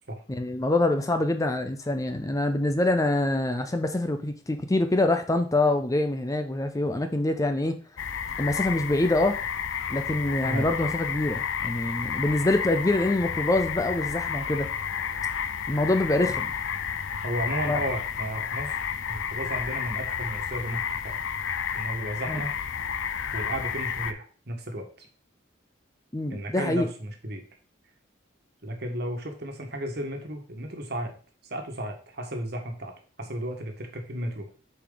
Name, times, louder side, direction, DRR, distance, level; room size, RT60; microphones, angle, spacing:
voice 1, 0.3-7.8 8.4-9.4 9.9-14.7 15.7-16.5 17.7-17.8 22.3-22.4 26.1-26.9, left 2 dB, 15° left, 7 dB, 0.5 m, -25 dB
sound 1, 8.0-24.1, left 7 dB, 75° left, 0.5 m, -31 dB
voice 2, 17.2-18.8 19.1-21.1 21.7-22.5 23.3-25.1 26.3-27.4 28.6-31.1 31.5-32.9 33.2-34.6, right 1 dB, 55° right, 3 dB, 1.5 m, -34 dB
6.7 x 4.9 x 3.9 m, 0.40 s
head